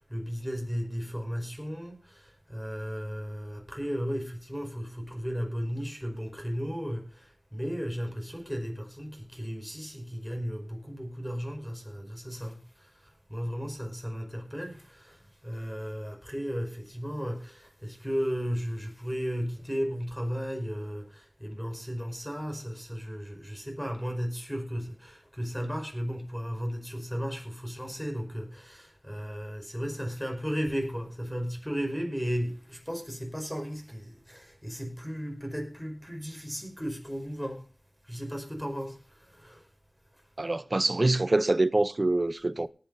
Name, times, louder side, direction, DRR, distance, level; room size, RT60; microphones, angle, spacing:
voice 1, 0.0-37.6 38.1-39.7, equal, 5° left, 5.2 m, -35 dB
voice 2, 40.4-42.7, right 2 dB, 45° right, 0.7 m, -25 dB
18.5 x 8.7 x 4.1 m
wide cardioid pair, 55°, 0 cm